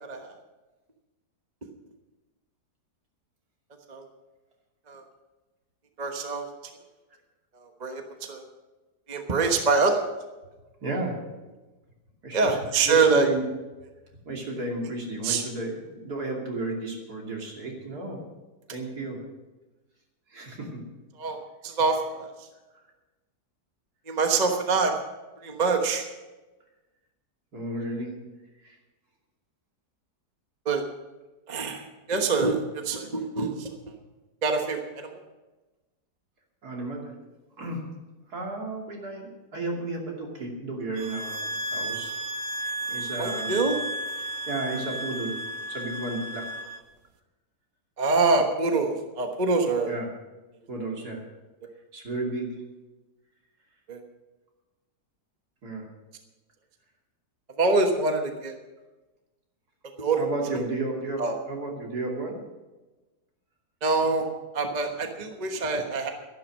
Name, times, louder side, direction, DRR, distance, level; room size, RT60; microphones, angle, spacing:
voice 1, 0.0-0.3 3.9-4.1 4.9-5.0 6.0-6.5 7.8-8.0 8.3-8.4 9.1-10.0 12.3-13.3 15.2-15.4 21.2-22.3 24.1-24.9 25.4-26.1 30.6-30.8 31.5-31.8 32.1-33.7 34.4-35.1 43.2-43.8 48.0-49.9 53.9-54.0 57.6-58.5 60.0-60.3 61.2-61.4 63.8-64.3 64.5-66.1, right 4 dB, 30° right, 4 dB, 1.2 m, -25 dB
voice 2, 10.8-11.2 12.2-12.6 12.8-13.4 14.3-18.2 18.7-19.2 20.3-20.8 22.7-22.8 27.5-28.1 28.6-28.8 36.6-37.2 37.6-37.8 38.3-41.4 41.7-42.1 42.6-43.6 44.2-45.4 45.7-46.5 49.9-50.1 50.7-51.2 51.9-52.6 55.6-55.9 60.2-62.4, right 2 dB, 65° right, -1 dB, 3.3 m, -33 dB
sound 1, 41.0-46.8, right 1 dB, 90° right, 1.7 m, -33 dB
12.5 x 12.0 x 6.3 m, 1.1 s
omnidirectional pair, 1.8 m